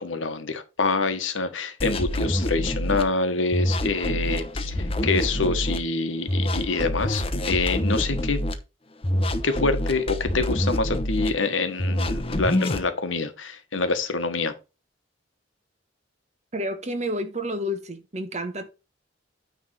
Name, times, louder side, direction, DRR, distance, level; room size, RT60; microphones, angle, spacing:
voice 1, 0.0-8.4 9.4-14.5, left 3 dB, 90° left, 1.4 m, -26 dB
sound 1, 1.8-3.0 3.5-5.8 6.3-8.5 9.0-11.3 11.8-12.8, left 1 dB, 30° left, 0.9 m, -26 dB
voice 2, 16.5-18.7, equal, 35° right, 1.2 m, -30 dB
9.3 x 3.5 x 6.0 m
head